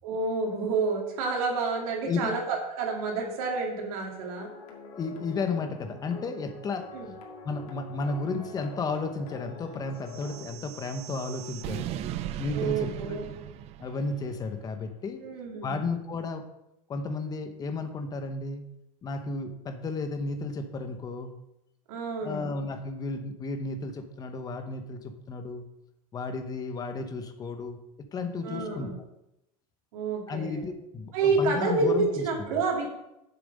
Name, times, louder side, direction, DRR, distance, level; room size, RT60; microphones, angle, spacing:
voice 1, 0.0-4.5 6.9-7.1 12.5-13.3 15.2-15.9 21.9-22.5 28.4-29.0 29.9-30.7 31.1-32.9, right 4 dB, 75° right, 1 dB, 2.3 m, -29 dB
sound 1, 4.3-10.5, left 4 dB, 90° left, 2.1 m, -45 dB
voice 2, 5.0-6.9 7.4-11.9 12.4-12.9 13.8-15.2 15.6-16.5 16.9-18.6 19.0-21.3 22.2-25.6 26.1-28.9 30.3-32.2, left 3 dB, 20° left, 7 dB, 0.9 m, -33 dB
sound 2, 10.1-14.4, right 11 dB, 35° right, 0.4 m, -38 dB
7.1 x 6.9 x 5.4 m, 0.89 s
supercardioid pair, 150°, 18 cm